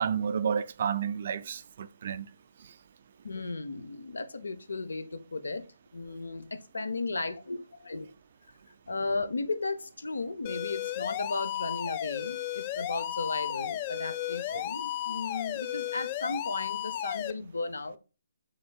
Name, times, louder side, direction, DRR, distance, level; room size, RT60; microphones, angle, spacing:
voice 1, 0.0-2.3 14.5-14.6, right 7 dB, 50° right, 0.4 m, -31 dB
voice 2, 3.2-5.7 5.9-8.1 8.9-18.0, left 3 dB, 85° left, 0.7 m, -35 dB
sound 1, 10.4-17.3, left 12 dB, 35° left, 0.4 m, -34 dB
5.2 x 3.5 x 2.3 m
hypercardioid pair, 150°, 0 cm